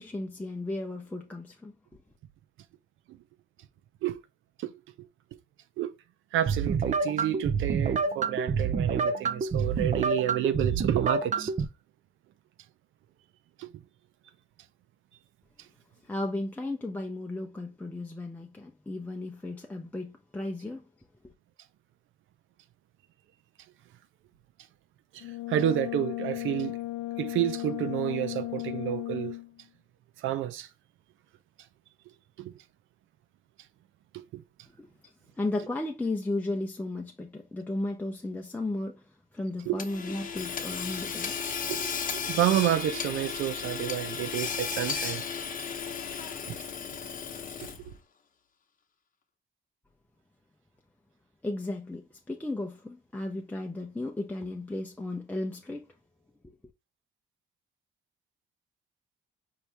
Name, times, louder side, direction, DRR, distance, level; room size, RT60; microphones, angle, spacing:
voice 1, 0.0-1.7 16.0-20.8 21.2-21.3 34.8-41.4 41.8-41.9 51.4-55.9, left 2 dB, 10° left, 0.5 m, -35 dB
voice 2, 6.3-11.5 13.6-13.8 25.1-26.8 27.2-29.3 30.2-30.7 32.4-32.5 34.1-34.4 39.7-39.8 41.7-41.8 42.1-45.2 46.5-46.6 47.6-47.7, right 12 dB, 80° right, 0.5 m, -30 dB
sound 1, 6.5-11.6, right 5 dB, 40° right, 0.6 m, -28 dB
Brass instrument, 25.2-29.6, left 16 dB, 70° left, 0.4 m, -35 dB
Hammer / Sawing, 39.8-48.0, left 6 dB, 40° left, 0.8 m, -34 dB
4.7 x 2.7 x 3.3 m
cardioid pair, 90°, 20 cm